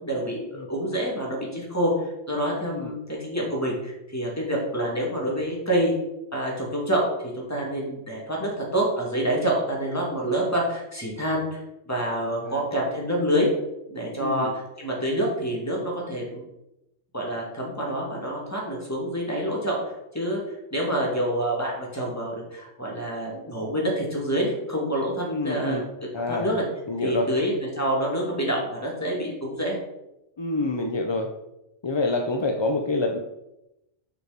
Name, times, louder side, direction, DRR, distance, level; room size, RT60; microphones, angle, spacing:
voice 1, 0.0-5.9 6.3-11.6 11.9-13.5 13.9-16.4 17.1-20.4 20.7-25.8 26.3-26.6 27.0-29.8, right 1 dB, 10° left, -3 dB, 2.2 m, -27 dB
voice 2, 14.2-14.5 25.2-25.8 26.1-26.5 26.9-27.3 30.4-31.3 31.8-33.2, left 2 dB, 45° left, 4 dB, 0.3 m, -27 dB
6.8 x 4.9 x 5.1 m, 0.88 s
omnidirectional pair, 1.3 m